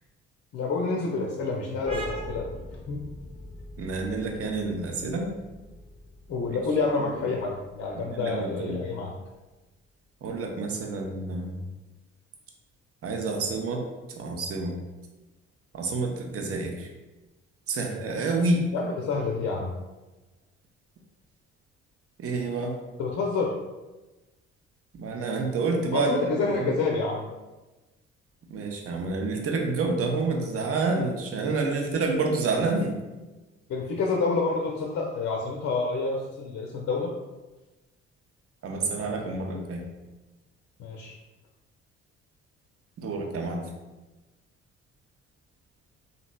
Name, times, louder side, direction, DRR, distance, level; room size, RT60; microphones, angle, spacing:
voice 1, 0.5-2.5 2.9-3.0 6.3-9.1 18.7-19.7 23.0-23.6 25.9-27.2 33.7-37.1 40.8-41.2, left 3 dB, 50° left, -1 dB, 0.5 m, -28 dB
sound 1, 1.9-9.2, equal, 15° right, 0.9 m, -41 dB
voice 2, 3.8-5.3 6.5-6.6 6.9-7.1 7.9-8.8 10.2-11.7 13.0-14.7 15.7-16.9 17.7-18.7 22.2-22.8 24.9-26.7 28.5-33.0 38.6-39.8 43.0-43.7, right 3 dB, 45° right, 2 dB, 0.6 m, -28 dB
2.8 x 2.7 x 2.2 m, 1.1 s
hypercardioid pair, 50°, 32 cm